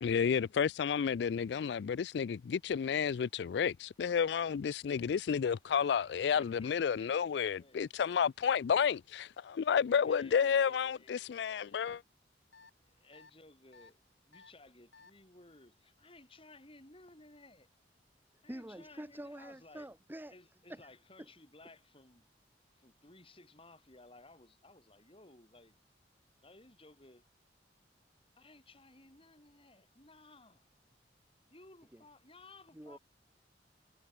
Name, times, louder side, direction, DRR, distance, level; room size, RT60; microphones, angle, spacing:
voice 1, 0.0-12.0, left 7 dB, 70° left, 0.3 m, -31 dB
voice 2, 5.7-8.1 9.6-11.8 12.8-17.7 18.4-19.9 20.3-22.3 22.7-25.8 26.4-27.2 28.4-30.6 31.5-33.0, left 2 dB, 30° left, 4.9 m, -58 dB
sound 1, 12.5-12.7 13.1-13.3 13.7-13.9 14.3-14.5 14.9-15.1, left 4 dB, 85° left, 7.4 m, -57 dB
voice 3, 18.5-20.3 20.7-20.8 31.9-32.0 32.7-33.0, right 1 dB, 10° right, 0.8 m, -46 dB
head